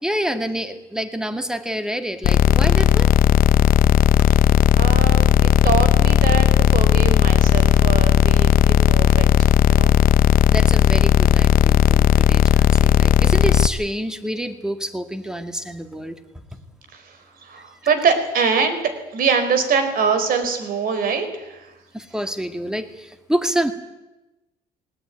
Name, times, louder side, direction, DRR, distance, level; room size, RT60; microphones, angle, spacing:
voice 1, 0.0-3.1 3.6-4.0 8.6-8.7 10.5-16.2 17.6-17.7 21.9-23.7, right 1 dB, 5° right, 7 dB, 2.1 m, -27 dB
sound 1, 2.2-13.7, left 9 dB, 55° left, 0.8 m, -15 dB
voice 2, 4.8-10.0 16.9-18.8 19.1-21.7, right 5 dB, 60° right, 9 dB, 4.5 m, -24 dB
19.5 x 19.0 x 9.4 m, 1.0 s
cardioid pair, 110°, 17 cm